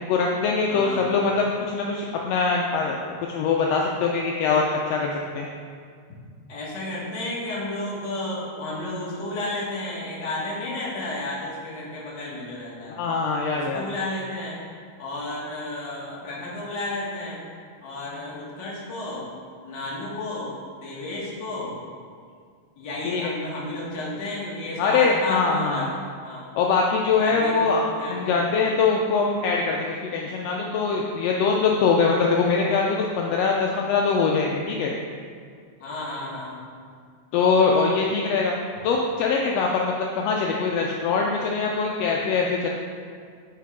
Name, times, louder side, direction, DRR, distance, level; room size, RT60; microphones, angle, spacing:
voice 1, 0.0-5.5 13.0-13.8 23.0-23.3 24.8-25.9 26.5-34.9 37.3-38.5 38.8-42.7, left 4 dB, 85° left, -1 dB, 1.4 m, -23 dB
voice 2, 0.7-1.0 6.5-13.0 13.5-14.6 15.0-17.4 17.8-19.3 19.6-20.5 20.8-21.8 22.8-26.0 26.2-26.5 27.2-28.3 35.8-36.5, left 2 dB, 45° left, -6 dB, 1.5 m, -32 dB
5.7 x 4.5 x 4.8 m, 2.1 s
omnidirectional pair, 3.3 m